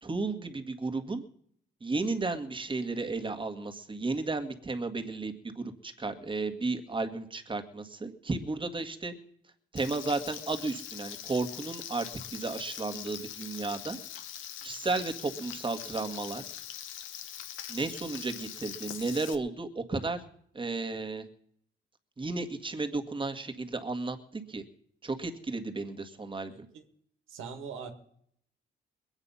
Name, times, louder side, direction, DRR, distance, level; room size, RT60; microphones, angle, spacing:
voice 1, 0.0-1.2 1.8-9.1 9.7-14.0 14.6-16.4 17.7-20.2 20.5-21.3 22.2-24.6 25.0-26.7, right 3 dB, 25° right, 1.8 m, -33 dB
Frying (food), 9.8-19.3, left 10 dB, 90° left, 1.1 m, -42 dB
voice 2, 26.5-26.8 27.3-27.9, right 6 dB, 90° right, 1.9 m, -42 dB
21.0 x 9.0 x 5.6 m
cardioid pair, 90°, 20 cm